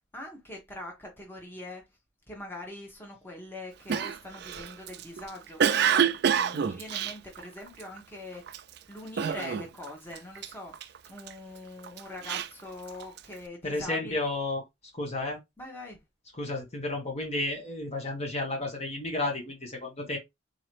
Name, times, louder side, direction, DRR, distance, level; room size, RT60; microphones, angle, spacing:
voice 1, 0.0-1.8 2.3-8.6 8.9-14.2 15.6-16.0, left 1 dB, 10° left, 1.1 m, -43 dB
Cough, 3.9-8.0 8.5-8.8 9.2-9.9 10.1-11.3 11.8-13.3, right 7 dB, 55° right, 0.4 m, -27 dB
voice 2, 13.6-14.6 14.9-15.4 16.3-20.2, left 2 dB, 35° left, 1.1 m, -32 dB
3.9 x 2.9 x 3.1 m
head